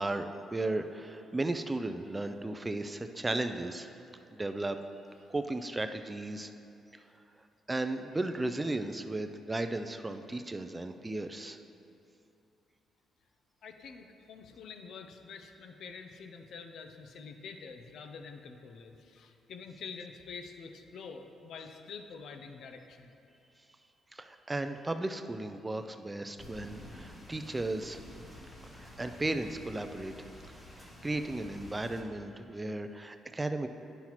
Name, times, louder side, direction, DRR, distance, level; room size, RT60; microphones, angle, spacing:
voice 1, 0.0-3.9 4.3-4.8 5.3-6.5 7.7-11.6 24.1-28.0 28.7-30.1 30.8-33.7, right 2 dB, 20° right, 8 dB, 0.3 m, -35 dB
voice 2, 13.6-23.2, left 5 dB, 70° left, 5 dB, 0.5 m, -47 dB
sound 1, 26.4-32.0, left 1 dB, 15° left, 1.6 m, -50 dB
10.0 x 5.6 x 3.0 m, 2.7 s
cardioid pair, 90°, 0 cm